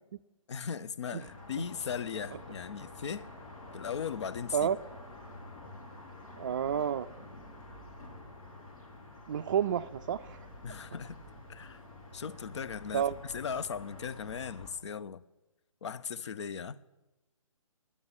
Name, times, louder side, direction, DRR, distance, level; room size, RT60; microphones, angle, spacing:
voice 1, 0.5-3.3 3.7-4.7 10.6-11.2 11.5-11.8 12.1-15.2 15.8-16.8, left 7 dB, 55° left, 0.6 m, -38 dB
sound 1, 1.2-14.7, left 2 dB, 75° left, 3.9 m, -49 dB
voice 2, 6.4-7.1 9.3-10.4 12.9-13.2, right 8 dB, 40° right, 0.4 m, -30 dB
10.0 x 8.6 x 9.5 m
figure-of-eight pair, 145°, 18 cm